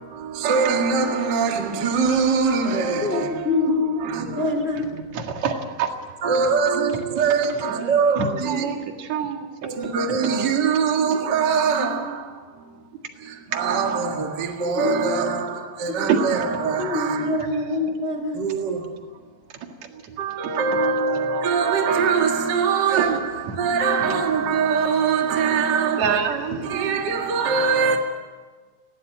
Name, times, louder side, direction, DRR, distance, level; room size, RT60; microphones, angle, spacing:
voice 1, 0.4-3.3 4.0-4.2 6.2-8.6 9.8-12.0 13.5-15.5 15.8-17.2 18.4-18.8 20.2-23.2 23.6-26.1 26.7-28.0, right 5 dB, 70° right, 1.0 m, -22 dB
voice 2, 3.0-5.0 8.6-8.8 11.8-12.1 14.6-15.2 15.7-16.1 16.8-18.4, left 3 dB, 30° left, 1.2 m, -26 dB
voice 3, 4.8-5.9 7.7-10.3 11.1-11.2 16.1-16.2 17.4-17.8 26.0-27.0, right 7 dB, 50° right, 2.4 m, -27 dB
19.0 x 17.5 x 9.1 m
omnidirectional pair, 5.2 m